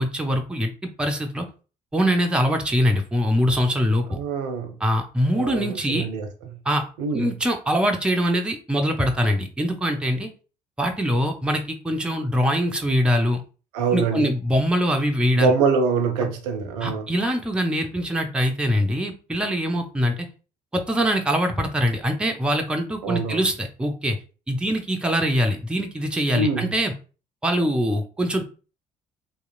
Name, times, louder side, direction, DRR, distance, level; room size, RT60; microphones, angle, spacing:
voice 1, 0.0-1.5 1.9-4.2 4.8-6.1 6.7-6.8 7.1-10.3 10.8-13.4 13.9-15.5 16.8-20.3 20.7-24.2 24.5-26.9 27.4-28.4, equal, 5° right, 0.4 m, -23 dB
voice 2, 4.1-4.8 5.4-6.6 7.0-7.3 13.7-14.3 15.4-17.1 23.0-23.4 26.3-26.7, right 5 dB, 70° right, 0.5 m, -24 dB
2.8 x 2.4 x 2.3 m
figure-of-eight pair, 45°, 21 cm